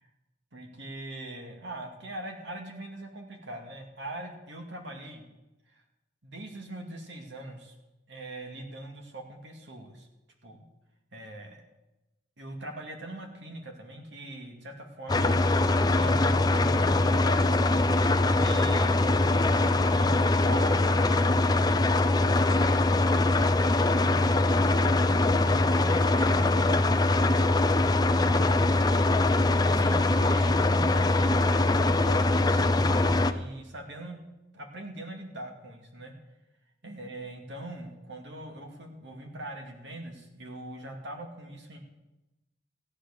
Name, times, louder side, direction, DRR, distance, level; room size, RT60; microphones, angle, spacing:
voice 1, 0.5-5.3 5.7-5.8 6.2-7.7 8.1-10.1 10.4-10.6 11.1-11.6 12.4-17.6 18.2-21.8 22.3-26.9 27.3-28.7 29.7-34.2 34.5-36.1 36.8-41.8, right 1 dB, 70° right, 3 dB, 2.4 m, -42 dB
sound 1, 15.1-33.3, left 2 dB, 20° left, 0.6 m, -23 dB
15.0 x 10.0 x 6.7 m, 0.99 s
head